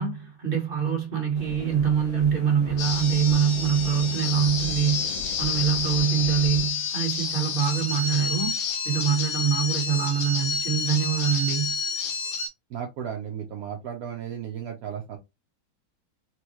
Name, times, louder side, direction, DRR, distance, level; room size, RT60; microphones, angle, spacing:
voice 1, 0.0-8.6 8.8-11.8, right 8 dB, 30° right, 1.5 m, -24 dB
sound 1, 1.3-6.7, left 3 dB, 45° left, 0.6 m, -40 dB
sound 2, 2.8-12.5, left 5 dB, 75° left, 1.7 m, -29 dB
voice 2, 12.7-15.2, right 8 dB, 70° right, 0.8 m, -34 dB
4.5 x 2.3 x 2.9 m
omnidirectional pair, 2.2 m